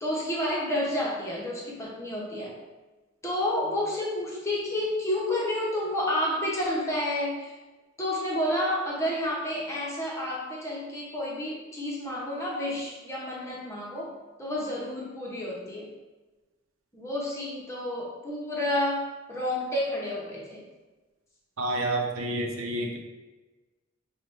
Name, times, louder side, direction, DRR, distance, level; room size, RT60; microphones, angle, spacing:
voice 1, 0.0-2.6 3.2-7.5 8.0-15.9 16.9-20.6, left 1 dB, 15° left, -5 dB, 0.9 m, -30 dB
voice 2, 21.6-23.0, right 1 dB, 90° right, 1 dB, 0.7 m, -29 dB
5.7 x 2.3 x 3.3 m, 1.2 s
head